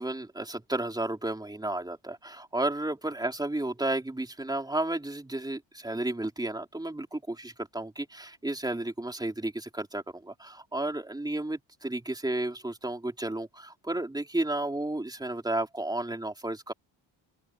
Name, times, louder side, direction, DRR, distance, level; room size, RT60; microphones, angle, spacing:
voice 1, 0.0-16.7, right 2 dB, 10° right, 3.6 m, -32 dB
open air
wide cardioid pair, 170°, 46 cm